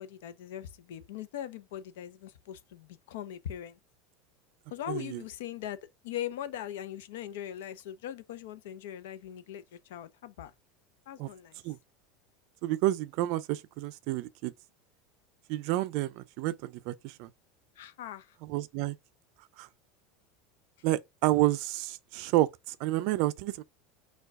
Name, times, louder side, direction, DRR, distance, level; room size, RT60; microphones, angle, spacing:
voice 1, 0.0-3.8 4.7-10.5 11.1-11.6 17.8-18.4, left 10 dB, 90° left, 0.6 m, -40 dB
voice 2, 4.9-5.2 11.2-11.3 11.6-11.8 12.6-14.5 15.5-17.3 18.4-19.0 19.6-19.7 20.8-23.6, right 16 dB, 55° right, 0.3 m, -30 dB
4.5 x 2.3 x 4.6 m
supercardioid pair, 160°, 0 cm